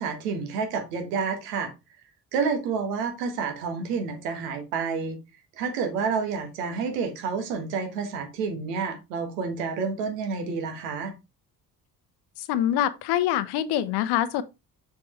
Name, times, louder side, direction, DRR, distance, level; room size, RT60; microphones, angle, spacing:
voice 1, 0.0-1.7 2.3-5.2 5.6-11.1, right 5 dB, 70° right, 1.7 m, -29 dB
voice 2, 12.4-14.4, left 11 dB, 55° left, 0.8 m, -25 dB
6.9 x 4.6 x 3.1 m
figure-of-eight pair, 50°, 49 cm